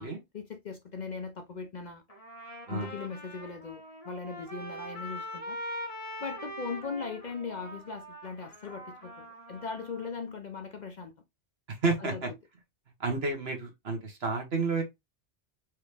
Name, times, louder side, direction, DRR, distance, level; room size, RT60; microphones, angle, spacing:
voice 1, 0.0-2.0 2.7-5.6 6.2-11.1 12.0-12.2, left 5 dB, 50° left, 0.6 m, -39 dB
Trumpet, 2.1-10.1, equal, 35° left, 1.6 m, -42 dB
voice 2, 11.7-12.3 13.0-14.8, right 3 dB, 65° right, 1.6 m, -30 dB
4.7 x 3.0 x 3.3 m
omnidirectional pair, 1.1 m